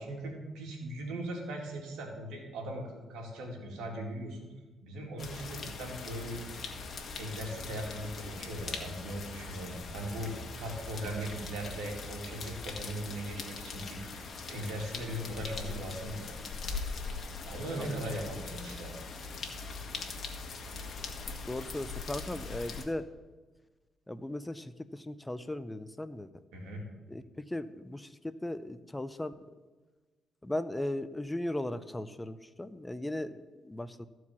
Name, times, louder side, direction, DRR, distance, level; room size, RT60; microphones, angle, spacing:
voice 1, 0.0-4.5 4.8-6.4 6.7-6.9 7.2-16.4 17.4-18.9 26.5-26.8, right 1 dB, 90° right, 1 dB, 2.2 m, -39 dB
sound 1, 5.2-22.9, left 4 dB, 50° left, 1.4 m, -41 dB
voice 2, 17.8-18.1 21.5-23.1 24.1-26.3 27.1-29.3 30.4-34.1, left 1 dB, 10° left, 13 dB, 0.5 m, -37 dB
14.0 x 4.7 x 7.2 m, 1.3 s
cardioid pair, 90°, 0 cm